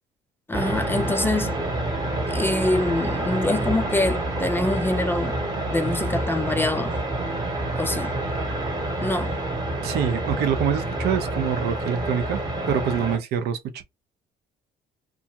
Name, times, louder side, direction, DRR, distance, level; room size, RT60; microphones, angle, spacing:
voice 1, 0.5-1.6 2.3-5.4 5.7-6.9 7.8-8.1 9.0-9.4, left 2 dB, 10° left, 0.4 m, -25 dB
sound 1, 0.5-13.2, right 2 dB, 25° right, 1.0 m, -27 dB
voice 2, 9.8-12.4 12.7-13.8, right 8 dB, 75° right, 0.7 m, -25 dB
2.6 x 2.3 x 2.9 m
cardioid pair, 110°, 17 cm